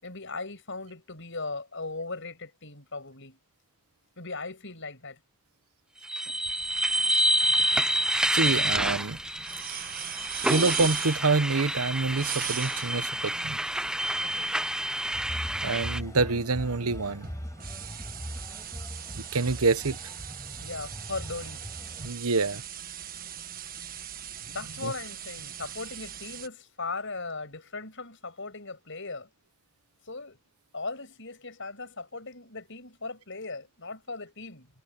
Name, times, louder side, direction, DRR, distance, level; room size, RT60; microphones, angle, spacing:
voice 1, 0.0-3.4 4.2-5.2 14.2-14.6 20.6-21.6 24.5-29.3 30.1-30.4 30.7-34.7, left 3 dB, 60° left, 7.8 m, -38 dB
sound 1, 6.0-16.0, right 1 dB, 5° right, 0.5 m, -28 dB
voice 2, 8.3-9.2 10.5-13.6 15.6-17.3 19.1-20.0 22.0-22.6 24.8-24.9, right 3 dB, 90° right, 1.1 m, -26 dB
sound 2, 9.0-26.5, right 9 dB, 40° right, 1.6 m, -40 dB
sound 3, 15.1-22.1, equal, 15° left, 6.5 m, -40 dB
head